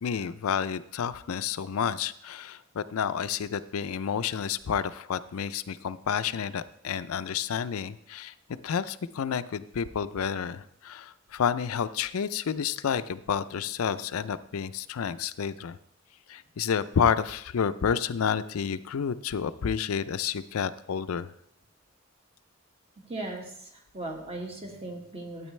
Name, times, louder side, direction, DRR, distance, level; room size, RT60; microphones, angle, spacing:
voice 1, 0.0-15.8 16.3-21.3, left 7 dB, 90° left, 14 dB, 0.4 m, -30 dB
voice 2, 23.1-25.5, right 2 dB, 30° right, 1 dB, 1.6 m, -38 dB
12.5 x 9.0 x 3.2 m, 0.71 s
head